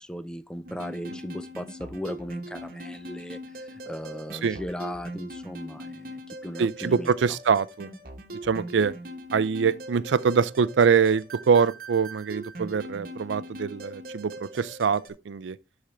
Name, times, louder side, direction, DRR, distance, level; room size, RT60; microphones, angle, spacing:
voice 1, 0.0-7.4, equal, 5° left, 0.4 m, -37 dB
sound 1, 0.6-15.1, equal, 50° right, 1.1 m, -41 dB
voice 2, 6.6-7.9 8.4-8.9 9.3-15.6, right 6 dB, 90° right, 0.4 m, -24 dB
11.5 x 4.4 x 3.5 m
head